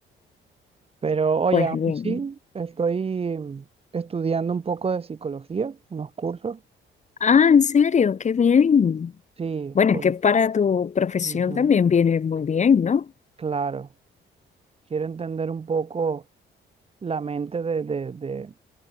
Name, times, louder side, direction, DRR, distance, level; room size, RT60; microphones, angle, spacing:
voice 1, 1.0-1.8 2.0-3.6 3.9-6.6 9.4-10.0 11.2-11.7 13.4-13.9 14.9-16.2 17.0-18.5, right 5 dB, 30° right, 0.7 m, -27 dB
voice 2, 1.5-2.2 7.2-9.1 9.7-13.1, left 6 dB, 35° left, 0.8 m, -19 dB
cardioid pair, 90°, 20 cm